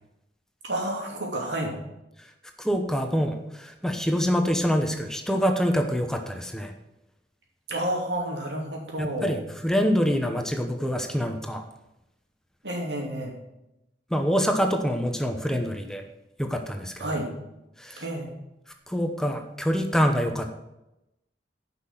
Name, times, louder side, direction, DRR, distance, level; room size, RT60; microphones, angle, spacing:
voice 1, 0.6-1.7 7.7-9.4 12.6-13.3 17.0-17.3 18.0-18.3, right 1 dB, 85° right, 0 dB, 2.8 m, -30 dB
voice 2, 2.6-6.7 9.0-11.6 14.1-16.0 16.4-17.2 17.8-18.0 18.9-20.5, equal, 5° left, 4 dB, 0.9 m, -26 dB
10.5 x 5.9 x 7.4 m, 0.90 s
head